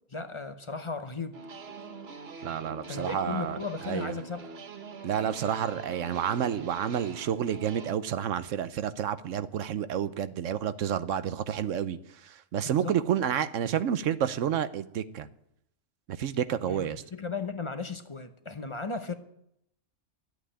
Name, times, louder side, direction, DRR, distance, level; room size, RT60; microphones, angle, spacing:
voice 1, 0.1-1.4 2.9-4.5 12.6-13.0 16.6-19.2, left 4 dB, 30° left, 0.7 m, -36 dB
sound 1, 1.3-7.9, right 4 dB, 55° right, 1.2 m, -44 dB
voice 2, 2.4-3.6 3.8-4.1 5.0-15.3 16.1-17.0, right 9 dB, 80° right, 1.1 m, -30 dB
11.5 x 8.4 x 10.0 m
omnidirectional pair, 1.3 m